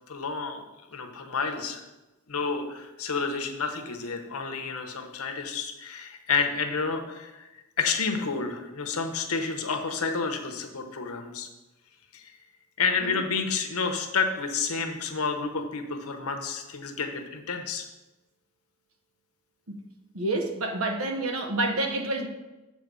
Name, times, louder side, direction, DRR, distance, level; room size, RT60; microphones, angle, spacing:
voice 1, 0.1-0.6 0.9-1.8 2.3-7.5 7.8-11.5 12.1-12.3 12.8-17.9, left 5 dB, 75° left, 5 dB, 1.0 m, -30 dB
voice 2, 20.1-22.3, right 2 dB, 70° right, 4 dB, 1.1 m, -28 dB
7.5 x 4.4 x 6.9 m, 1.1 s
head